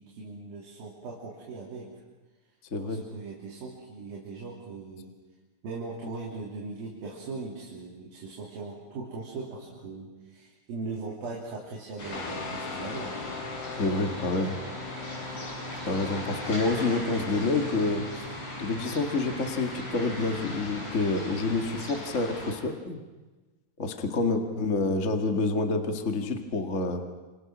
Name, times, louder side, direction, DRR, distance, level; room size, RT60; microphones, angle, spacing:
voice 1, 0.0-1.9 2.8-5.1 5.6-13.2, right 3 dB, 65° right, -4 dB, 5.0 m, -39 dB
sound 1, 12.0-22.5, left 1 dB, 80° left, 9.5 m, -39 dB
Guitar, 12.1-21.0, left 4 dB, 60° left, 1.2 m, -42 dB
voice 2, 13.8-14.6 15.8-18.2 18.6-23.0 23.8-27.0, left 3 dB, 30° left, 4 dB, 1.4 m, -28 dB
28.5 x 28.0 x 6.3 m, 1.2 s
omnidirectional pair, 4.6 m